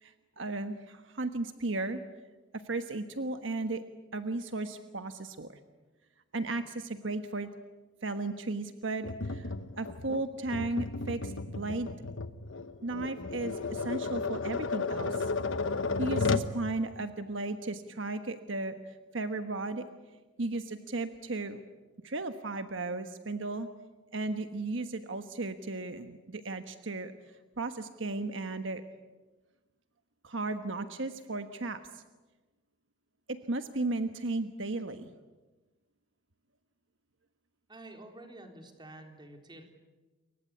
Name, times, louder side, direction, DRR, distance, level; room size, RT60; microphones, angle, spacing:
voice 1, 0.0-2.0 2.5-3.8 4.1-5.6 6.3-7.5 8.0-9.5 9.8-11.9 12.8-15.3 16.0-19.9 20.4-21.6 22.0-23.7 24.1-27.1 27.6-28.8 30.2-32.0 33.3-35.1, right 2 dB, 70° right, 8 dB, 1.3 m, -35 dB
Tap, 9.0-16.5, left 3 dB, 75° left, 1.2 m, -33 dB
voice 2, 37.7-39.6, right 1 dB, 25° right, 4 dB, 3.9 m, -49 dB
28.0 x 23.5 x 8.5 m, 1.2 s
head